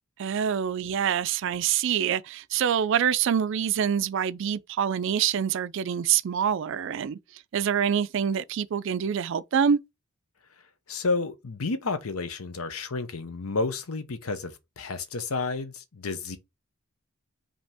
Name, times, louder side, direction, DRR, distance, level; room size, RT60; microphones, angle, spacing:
voice 1, 0.2-7.2 7.5-9.8, right 8 dB, 60° right, 0.3 m, -26 dB
voice 2, 10.9-16.4, left 3 dB, 85° left, 0.8 m, -31 dB
5.2 x 2.9 x 3.4 m
head